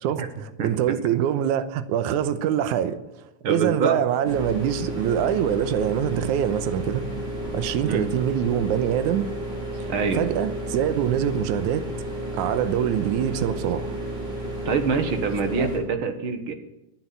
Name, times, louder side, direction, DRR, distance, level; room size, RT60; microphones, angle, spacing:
voice 1, 0.0-3.0 3.5-7.0 7.5-9.2 10.1-11.9 12.3-14.0 15.6-15.7, right 10 dB, 75° right, 2.3 m, -24 dB
voice 2, 3.4-4.0 7.8-8.1 9.9-10.2 14.7-16.5, right 5 dB, 55° right, 1.7 m, -25 dB
sound 1, 4.2-15.8, right 1 dB, 35° right, 5.6 m, -32 dB
12.5 x 10.0 x 9.6 m
omnidirectional pair, 3.6 m